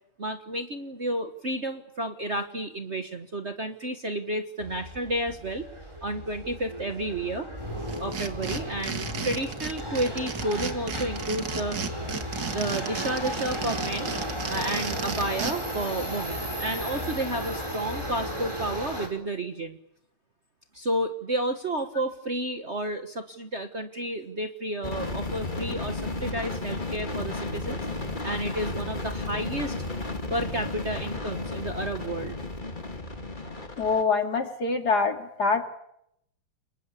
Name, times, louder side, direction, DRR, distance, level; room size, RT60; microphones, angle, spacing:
voice 1, 0.2-5.6 6.0-7.5 8.0-12.0 12.5-14.1 14.5-19.8 20.7-29.7 30.3-32.4, right 1 dB, 35° right, 6 dB, 1.5 m, -31 dB
Subway metro underground, 4.6-19.1, equal, 10° right, 5.1 m, -34 dB
sound 1, 7.9-15.5, right 6 dB, 55° right, 2.4 m, -34 dB
sound 2, 24.8-34.0, left 2 dB, 20° left, 2.5 m, -33 dB
voice 2, 33.8-35.6, left 4 dB, 45° left, 5 dB, 2.8 m, -25 dB
29.5 x 22.5 x 8.6 m, 0.78 s
omnidirectional pair, 2.4 m